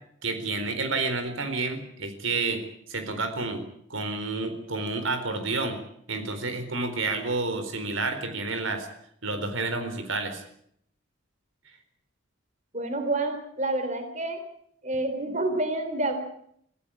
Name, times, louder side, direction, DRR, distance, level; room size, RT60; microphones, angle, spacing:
voice 1, 0.2-2.6 2.9-3.6 3.9-5.8 6.1-8.9 9.2-10.4, right 3 dB, 80° right, 8 dB, 4.2 m, -29 dB
voice 2, 12.7-14.4 14.8-16.2, right 2 dB, 35° right, 7 dB, 3.6 m, -28 dB
25.0 x 15.5 x 8.7 m, 0.69 s
head